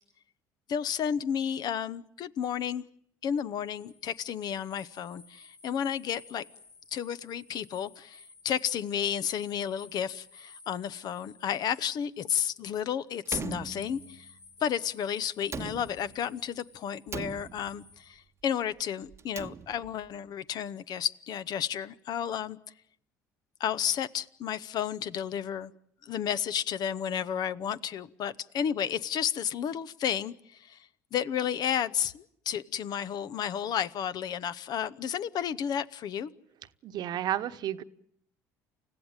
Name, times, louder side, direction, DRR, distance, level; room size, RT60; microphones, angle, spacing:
voice 1, 0.7-2.8 3.2-6.5 6.9-14.3 14.6-22.6 23.6-25.7 26.0-36.3, left 9 dB, 55° left, 0.9 m, -32 dB
sound 1, 3.6-12.9 13.8-18.1, left 4 dB, 80° left, 6.1 m, -55 dB
Slam, 13.3-14.4 15.4-16.3 17.1-18.0 19.1-20.1, right 6 dB, 35° right, 0.9 m, -40 dB
voice 2, 36.8-37.8, right 11 dB, 60° right, 1.1 m, -31 dB
29.0 x 15.5 x 9.0 m
hypercardioid pair, 65°, 8 cm